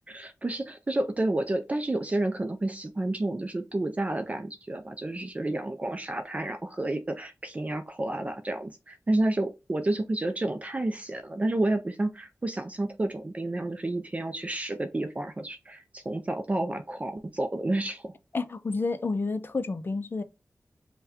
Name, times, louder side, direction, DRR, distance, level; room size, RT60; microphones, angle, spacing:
voice 1, 0.1-18.1, right 2 dB, 25° right, 0.4 m, -30 dB
voice 2, 18.3-20.2, left 3 dB, 40° left, 0.4 m, -30 dB
5.5 x 2.2 x 2.9 m
wide cardioid pair, 95°, 5 cm